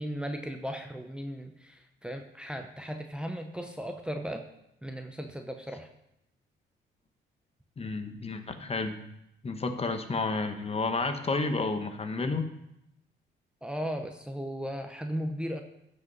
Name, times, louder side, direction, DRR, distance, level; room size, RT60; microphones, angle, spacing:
voice 1, 0.0-4.4 4.8-5.9 13.6-15.6, equal, 5° right, 4 dB, 0.8 m, -36 dB
voice 2, 7.8-9.0 9.4-12.5, left 3 dB, 30° left, 7 dB, 1.1 m, -31 dB
15.0 x 5.5 x 4.1 m, 0.82 s
cardioid pair, 90°, 20 cm